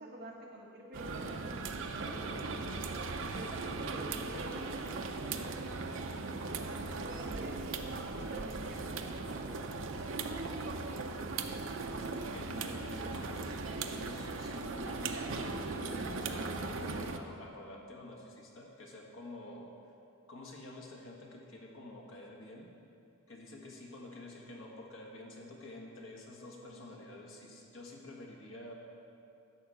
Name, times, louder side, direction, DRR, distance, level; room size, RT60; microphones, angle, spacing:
voice 1, 0.0-2.9 3.3-5.9 6.4-10.7 26.6-26.8, right 1 dB, 45° right, -1 dB, 1.4 m, -48 dB
sound 1, 0.9-17.2, right 3 dB, 60° right, 0.6 m, -38 dB
voice 2, 11.9-19.8 20.3-22.7 23.3-28.7, left 1 dB, 65° left, -1 dB, 1.5 m, -49 dB
11.5 x 4.8 x 7.8 m, 2.6 s
head